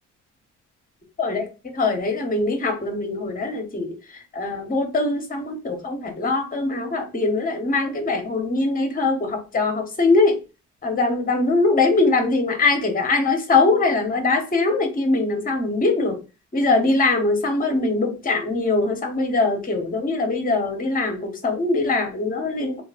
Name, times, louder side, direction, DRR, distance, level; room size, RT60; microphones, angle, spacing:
voice 1, 1.7-3.9 4.3-10.4 10.8-16.2 16.5-22.8, left 3 dB, 30° left, 4 dB, 1.1 m, -22 dB
3.2 x 2.5 x 3.5 m, 0.31 s
cardioid pair, 90°, 30 cm